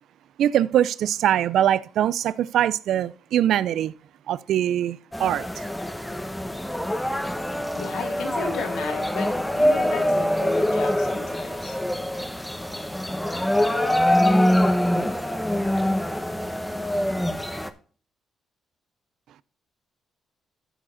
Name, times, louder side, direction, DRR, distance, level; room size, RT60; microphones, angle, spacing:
voice 1, 0.4-3.9 4.3-5.6, right 11 dB, 75° right, 0.4 m, -22 dB
sound 1, 5.1-17.7, left 1 dB, 5° left, 1.0 m, -24 dB
voice 2, 7.5-11.8 12.2-12.3, left 5 dB, 80° left, 2.6 m, -34 dB
14.0 x 5.0 x 3.8 m
cardioid pair, 90°, 0 cm